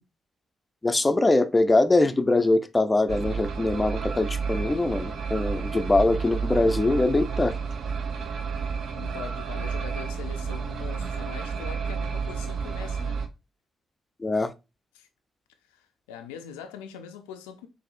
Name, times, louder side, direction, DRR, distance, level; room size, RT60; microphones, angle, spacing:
voice 1, 0.8-7.6 14.2-14.5, left 2 dB, 25° left, 0.5 m, -22 dB
sound 1, 3.1-13.3, right 5 dB, 65° right, 0.5 m, -31 dB
voice 2, 8.4-13.2 14.9-15.1 15.7-17.7, left 8 dB, 90° left, 0.4 m, -42 dB
4.0 x 2.6 x 2.5 m
hypercardioid pair, 45°, 0 cm